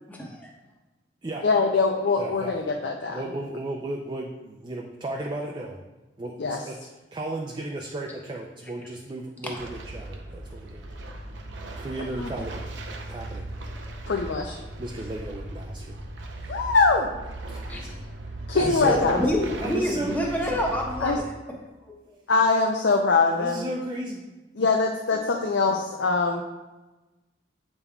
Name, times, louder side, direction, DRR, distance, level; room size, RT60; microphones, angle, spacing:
voice 1, 0.1-0.5 17.7-17.8 18.9-21.3 21.9-22.2, left 1 dB, 10° left, -1 dB, 0.9 m, -27 dB
voice 2, 1.4-3.2 6.4-6.6 12.0-12.3 14.1-14.6 16.5-17.1 18.5-19.2 21.0-21.2 22.3-23.6 24.6-26.4, left 4 dB, 70° left, 1 dB, 0.5 m, -23 dB
voice 3, 2.2-2.6 3.1-5.8 6.2-6.8 7.1-10.9 11.8-12.7 13.1-13.5 14.8-16.0 16.4-16.8 17.5-18.0 18.5-20.6 23.3-24.2 25.7-25.8, right 1 dB, 25° right, 0 dB, 0.4 m, -34 dB
sound 1, 9.5-21.2, right 1 dB, 80° right, 0.7 m, -38 dB
8.1 x 5.3 x 2.3 m, 1.1 s
head